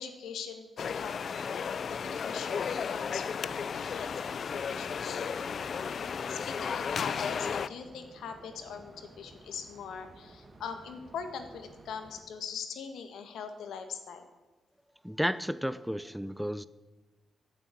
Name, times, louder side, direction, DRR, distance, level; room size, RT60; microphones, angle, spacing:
voice 1, 0.0-5.7 6.3-14.3, left 6 dB, 90° left, 7 dB, 1.7 m, -42 dB
sound 1, 0.8-7.7, left 6 dB, 60° left, 0.4 m, -34 dB
sound 2, 3.5-12.2, right 2 dB, 30° right, 1.9 m, -55 dB
voice 2, 15.0-16.7, equal, ahead, 16 dB, 0.5 m, -32 dB
15.5 x 7.6 x 8.6 m, 1.1 s
cardioid pair, 90°, 0 cm